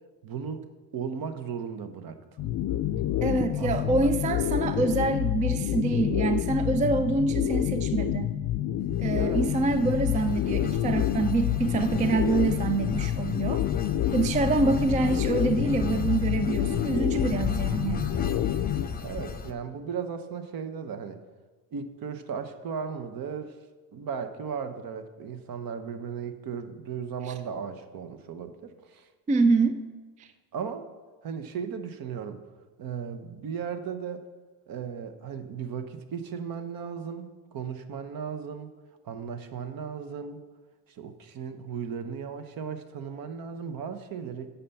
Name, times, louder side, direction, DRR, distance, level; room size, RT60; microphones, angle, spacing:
voice 1, 0.2-2.5 3.2-4.1 9.1-9.5 14.6-14.8 19.0-21.2 21.7-23.6 23.9-29.1 30.5-30.9 31.2-32.4 32.8-34.3 34.7-38.7 39.0-40.4 40.9-44.5, right 6 dB, 55° right, 10 dB, 1.0 m, -36 dB
sound 1, 2.4-18.9, left 12 dB, 50° left, 0.4 m, -28 dB
voice 2, 3.2-8.4 9.0-13.6 14.1-18.1 29.3-29.8, right 3 dB, 20° right, 11 dB, 0.3 m, -26 dB
sound 2, 8.8-19.5, left 5 dB, 20° left, 0.8 m, -36 dB
9.0 x 5.8 x 7.0 m, 1.3 s
cardioid pair, 120°, 42 cm